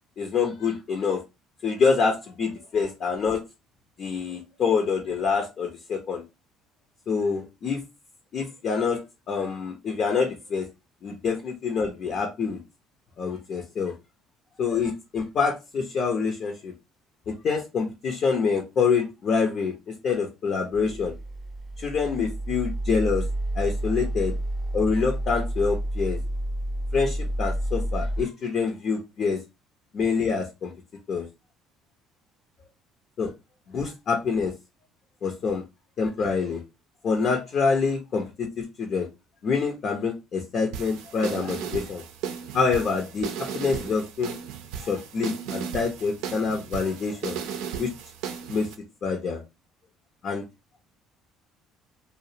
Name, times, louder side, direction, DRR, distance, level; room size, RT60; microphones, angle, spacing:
voice 1, 0.2-1.2 1.6-3.4 4.0-6.2 7.1-7.8 8.3-9.0 9.3-10.7 11.0-12.6 13.2-13.9 14.6-16.7 17.3-21.1 21.8-23.2 23.5-24.3 24.7-26.2 26.9-29.4 29.9-30.7 31.1-31.3 33.2-33.3 33.7-34.5 35.2-35.6 36.0-36.6 37.0-39.1 39.4-42.0 42.5-44.3 44.8-47.4 47.8-47.9 48.5-48.7 49.0-49.4 50.2-50.4, left 5 dB, 50° left, 3 dB, 0.6 m, -26 dB
sound 1, 20.7-28.2, right 1 dB, 10° right, 0.6 m, -30 dB
sound 2, 40.7-48.8, right 8 dB, 85° right, 0.4 m, -35 dB
2.4 x 2.0 x 2.7 m, 0.25 s
supercardioid pair, 90°, 0 cm